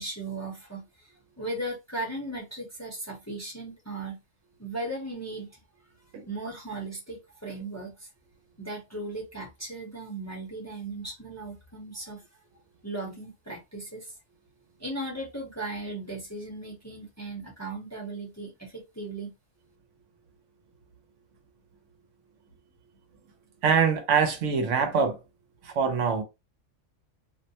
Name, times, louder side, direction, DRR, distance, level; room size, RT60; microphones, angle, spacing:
voice 1, 0.0-4.2 4.6-5.6 6.3-8.1 8.6-12.2 12.8-14.2 14.8-19.3, right 2 dB, 15° left, 0.7 m, -37 dB
voice 2, 23.6-25.2 25.6-26.2, right 6 dB, 75° right, 1.0 m, -24 dB
2.5 x 2.1 x 2.7 m
omnidirectional pair, 1.3 m